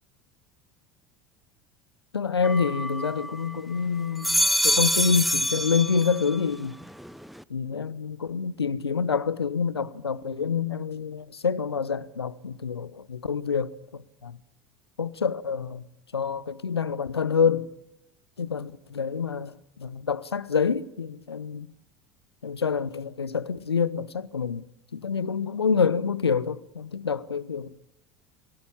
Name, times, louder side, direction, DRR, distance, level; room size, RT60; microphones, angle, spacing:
voice 1, 2.1-6.8 7.5-14.4 15.0-15.8 16.1-17.7 18.4-21.7 22.4-24.7 24.9-27.7, left 6 dB, 90° left, 0.9 m, -27 dB
sound 1, 2.4-3.6 4.0-6.4 6.8-7.4, equal, ahead, 0.8 m, -26 dB
27.0 x 17.0 x 7.2 m
figure-of-eight pair, 75°, 13 cm